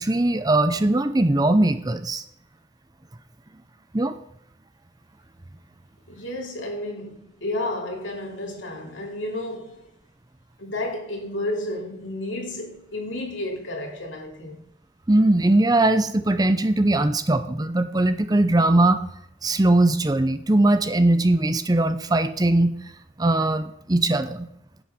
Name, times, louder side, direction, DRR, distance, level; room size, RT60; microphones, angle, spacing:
voice 1, 0.0-2.2 3.9-4.2 15.1-19.0 19.4-22.7 23.2-24.5, right 2 dB, 20° right, 0.6 m, -20 dB
voice 2, 6.1-9.8 10.6-14.6, left 1 dB, 85° left, 2.8 m, -31 dB
10.5 x 7.9 x 5.0 m
head